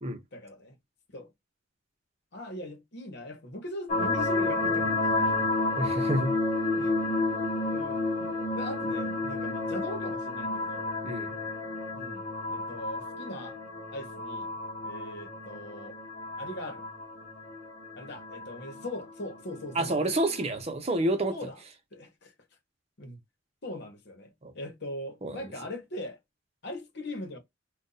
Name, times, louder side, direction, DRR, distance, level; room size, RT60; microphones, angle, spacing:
voice 1, 0.3-0.7 1.1-1.3 2.3-5.4 5.7-5.8 6.7-7.0 7.7-8.0 8.5-10.9 11.9-12.2 12.5-13.6 13.9-14.5 14.8-16.0 16.4-16.9 18.0-20.0 21.3-21.6 21.9-22.3 23.0-23.2 23.6-26.2 26.6-27.4, left 1 dB, 60° left, 1.1 m, -40 dB
sound 1, 3.9-20.5, left 2 dB, 40° left, 0.9 m, -31 dB
voice 2, 5.8-6.3 8.2-8.3 11.0-11.3 19.7-21.4 24.4-24.5 25.2-25.4, right 1 dB, 30° right, 0.8 m, -28 dB
2.6 x 2.3 x 3.9 m
head